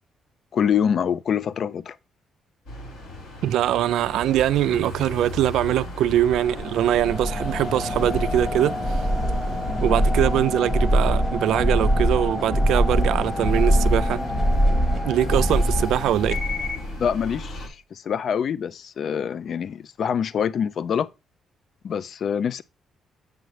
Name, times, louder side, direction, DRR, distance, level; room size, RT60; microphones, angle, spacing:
voice 1, 0.5-2.0 17.0-21.1 21.8-22.6, left 7 dB, 60° left, 0.3 m, -25 dB
sound 1, 2.7-17.7, left 2 dB, 85° left, 4.5 m, -37 dB
voice 2, 3.4-9.1 9.8-14.2 15.0-16.4, right 12 dB, 80° right, 0.3 m, -22 dB
sound 2, 6.3-16.9, equal, 25° left, 1.4 m, -23 dB
7.7 x 6.5 x 3.2 m
cardioid pair, 90°, 0 cm